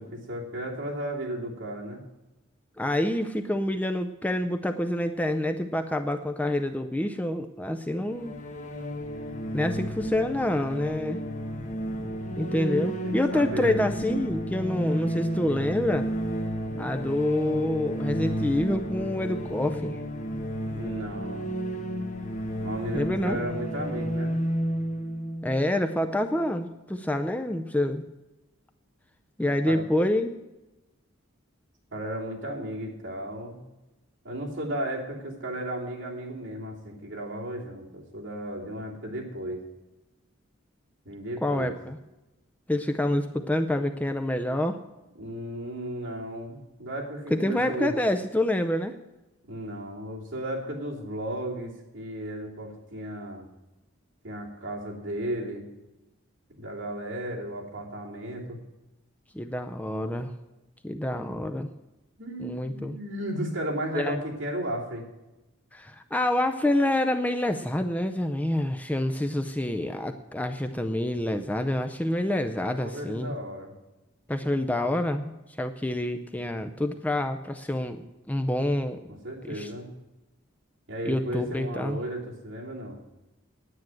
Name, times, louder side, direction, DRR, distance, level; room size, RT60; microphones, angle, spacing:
voice 1, 0.0-2.0 13.0-13.8 20.7-21.5 22.6-24.4 29.7-29.8 31.9-33.6 34.2-39.6 41.0-41.7 45.1-47.9 49.5-53.5 54.2-55.6 56.6-58.6 62.2-65.1 72.6-73.7 79.1-79.9 80.9-83.0, right 1 dB, 60° right, -4 dB, 3.0 m, -34 dB
voice 2, 2.8-8.3 9.5-11.2 12.4-16.1 16.8-20.0 22.9-23.4 25.4-28.0 29.4-30.3 41.4-42.0 42.7-44.8 47.3-48.9 59.3-60.3 60.8-61.7 62.4-63.0 64.0-64.2 65.7-73.3 74.3-78.0 78.3-79.0 79.4-79.7 81.1-82.0, left 1 dB, 5° left, 6 dB, 0.4 m, -27 dB
sound 1, 8.0-26.6, equal, 35° left, 1.3 m, -32 dB
9.7 x 9.1 x 7.7 m, 1.0 s
head